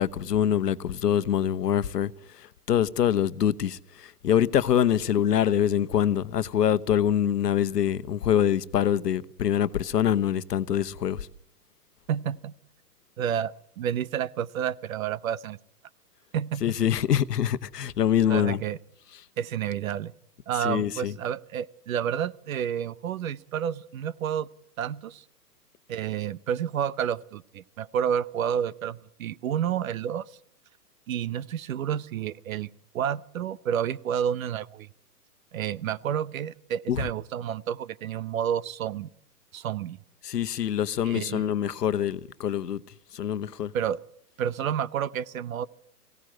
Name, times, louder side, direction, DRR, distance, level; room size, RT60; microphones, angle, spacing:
voice 1, 0.0-2.1 2.4-11.3 16.6-18.6 20.6-21.1 36.9-37.0 40.2-42.8 43.1-43.7, left 10 dB, 80° left, 1.1 m, -25 dB
voice 2, 12.1-12.5 13.2-15.6 16.3-16.6 18.3-18.8 19.4-20.1 20.5-24.5 24.8-25.2 25.9-30.2 31.1-32.7 32.9-34.9 35.5-39.1 39.5-40.0 41.0-41.5 43.7-44.0 44.4-45.7, right 9 dB, 60° right, 0.8 m, -30 dB
22.0 x 17.0 x 7.6 m
hypercardioid pair, 135°, 47 cm